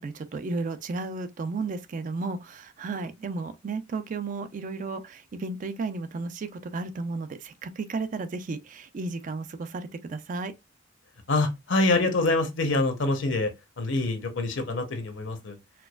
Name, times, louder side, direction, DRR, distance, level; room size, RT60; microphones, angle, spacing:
voice 1, 0.0-10.5, right 3 dB, 40° right, 0.4 m, -33 dB
voice 2, 11.3-13.5 13.8-15.6, left 2 dB, 65° left, 0.8 m, -25 dB
4.4 x 2.3 x 2.2 m
head